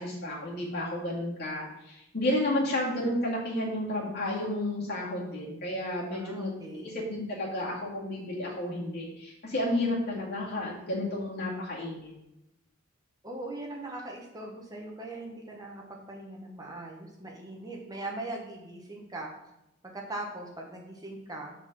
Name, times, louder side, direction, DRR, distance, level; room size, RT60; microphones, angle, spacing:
voice 1, 0.0-12.1, left 1 dB, 55° left, -4 dB, 2.2 m, -32 dB
voice 2, 6.1-7.0 13.2-19.3 19.9-21.5, right 2 dB, 20° right, 0 dB, 1.0 m, -40 dB
7.0 x 4.2 x 5.8 m, 0.88 s
head